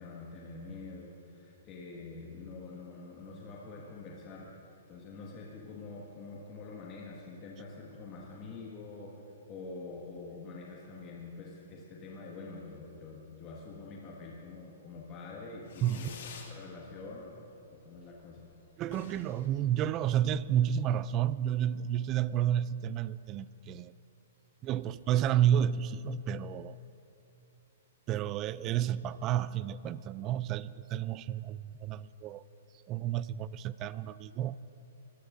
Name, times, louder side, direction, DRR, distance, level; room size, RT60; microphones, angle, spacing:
voice 1, 0.0-16.2 16.5-17.4 17.7-18.5, left 3 dB, 30° left, 1.8 m, -46 dB
Fireworks, 15.6-16.6 16.9-17.5 17.8-17.9 18.1-18.2 18.5-18.6 18.8-20.5, left 5 dB, 65° left, 2.1 m, -49 dB
voice 2, 18.8-23.9 24.6-26.8 28.1-32.4 32.9-34.6, right 10 dB, 25° right, 0.3 m, -31 dB
23.0 x 17.0 x 2.6 m
hypercardioid pair, 150°, 0 cm